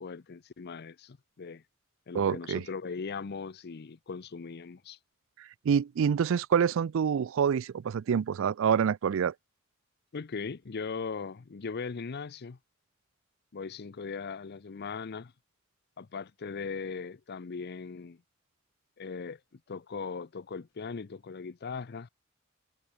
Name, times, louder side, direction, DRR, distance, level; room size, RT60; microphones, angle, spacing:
voice 1, 0.0-1.6 2.1-5.0 10.1-12.6 13.5-15.3 16.0-18.2 19.0-19.4 19.7-22.1, left 5 dB, 50° left, 0.6 m, -39 dB
voice 2, 2.1-2.6 5.7-9.3, right 7 dB, 65° right, 0.4 m, -26 dB
head